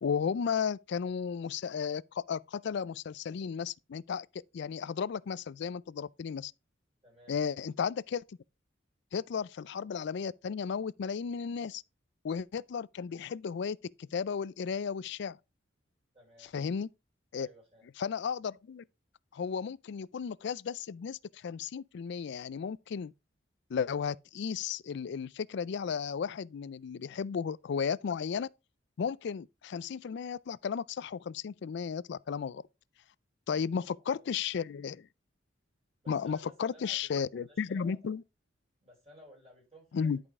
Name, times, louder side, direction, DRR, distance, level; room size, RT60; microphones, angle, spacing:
voice 1, 0.0-4.3 4.5-6.5 7.3-8.4 9.1-11.8 12.2-15.4 16.5-16.9 17.3-17.5 18.0-18.8 19.3-23.1 23.7-28.5 29.0-32.6 33.5-35.1 36.1-38.2 39.9-40.2, left 6 dB, 65° left, 0.4 m, -34 dB
voice 2, 7.0-7.5 16.1-16.5 17.3-17.9 34.0-34.2 36.0-38.1 38.8-40.1, equal, 35° right, 4.1 m, -57 dB
11.0 x 5.0 x 3.5 m
head